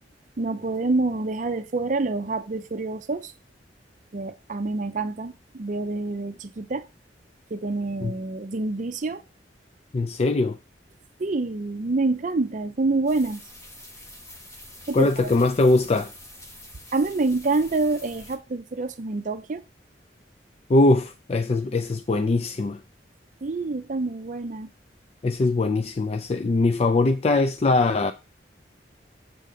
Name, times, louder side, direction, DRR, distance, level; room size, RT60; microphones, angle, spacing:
voice 1, 0.4-3.3 4.1-6.9 7.5-9.2 11.2-13.4 14.9-15.3 16.9-19.6 23.4-24.7, right 3 dB, 45° right, 0.5 m, -27 dB
voice 2, 9.9-10.6 14.9-16.1 20.7-22.8 25.2-28.1, left 2 dB, 35° left, 0.4 m, -21 dB
sound 1, 13.1-18.4, left 1 dB, 15° left, 1.4 m, -46 dB
7.6 x 3.9 x 6.5 m
head